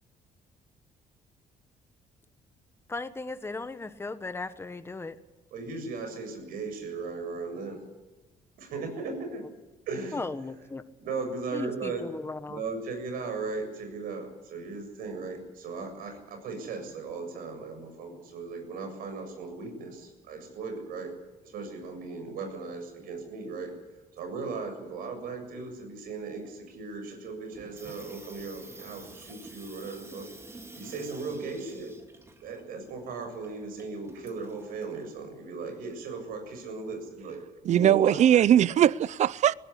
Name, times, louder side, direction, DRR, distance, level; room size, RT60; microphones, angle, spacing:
voice 1, 2.9-5.2 10.1-10.8 11.5-12.6, left 3 dB, 15° left, 1.4 m, -36 dB
voice 2, 5.5-7.8 8.6-9.4 9.9-10.3 11.0-12.1 12.5-21.2 21.4-23.7 24.1-31.9 32.4-38.3, right 4 dB, 85° right, 7.3 m, -37 dB
Water tap faucet / Sink (filling or washing), 27.5-35.1, right 2 dB, 15° right, 3.0 m, -50 dB
voice 3, 37.7-39.5, right 10 dB, 55° right, 0.6 m, -20 dB
21.0 x 16.5 x 9.9 m
cardioid pair, 115°, 15 cm